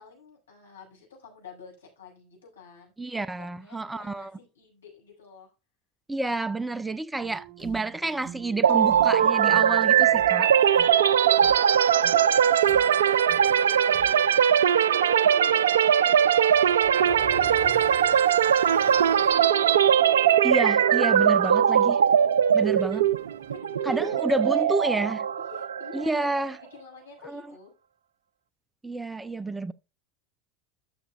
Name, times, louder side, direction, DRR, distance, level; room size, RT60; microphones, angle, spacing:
voice 1, 0.0-2.9 3.2-5.5 10.4-11.7 12.0-19.3 22.5-22.7 23.5-27.7, left 5 dB, 75° left, 6.1 m, -49 dB
voice 2, 3.0-4.3 6.1-10.5 20.4-22.0 22.5-23.1 23.9-25.2 25.9-26.6 27.3-27.4 28.8-29.7, right 2 dB, 10° right, 0.6 m, -29 dB
sound 1, 7.2-14.3, right 10 dB, 35° right, 4.9 m, -47 dB
sound 2, 8.6-26.4, right 9 dB, 70° right, 0.4 m, -21 dB
sound 3, 15.5-15.9 16.4-19.4 20.5-20.6 21.5-21.6 22.1-23.6, left 3 dB, 55° left, 5.9 m, -47 dB
13.0 x 7.8 x 2.4 m
figure-of-eight pair, 80°, 0 cm